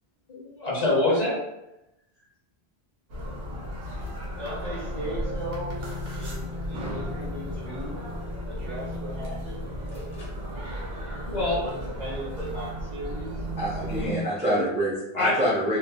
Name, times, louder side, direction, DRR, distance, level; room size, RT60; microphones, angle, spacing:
voice 1, 0.3-1.4 11.2-11.6 14.0-14.3 14.5-14.7 15.1-15.4, left 2 dB, 45° left, -6 dB, 0.8 m, -25 dB
sound 1, 3.1-14.1, equal, 75° right, 0.9 m, -34 dB
voice 2, 4.4-5.8 6.1-8.1 8.4-10.0 11.0-13.3, right 1 dB, 50° right, -5 dB, 0.6 m, -38 dB
voice 3, 13.6-15.8, equal, 10° right, -8 dB, 0.4 m, -26 dB
3.1 x 2.0 x 2.2 m, 0.88 s
omnidirectional pair, 1.0 m